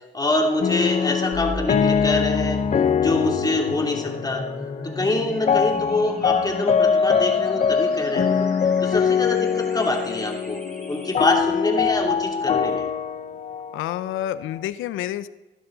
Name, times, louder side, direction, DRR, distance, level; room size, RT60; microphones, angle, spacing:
voice 1, 0.1-2.6 3.0-4.5 4.8-8.5 8.8-10.6 10.9-12.8, left 2 dB, 20° left, 0 dB, 2.8 m, -25 dB
sound 1, 0.6-14.6, left 6 dB, 35° left, 0.6 m, -23 dB
sound 2, 1.3-11.3, equal, ahead, 4.9 m, -37 dB
voice 2, 13.7-15.3, left 12 dB, 90° left, 15 dB, 0.6 m, -28 dB
15.5 x 11.5 x 3.9 m, 1.1 s
cardioid pair, 90°, 20 cm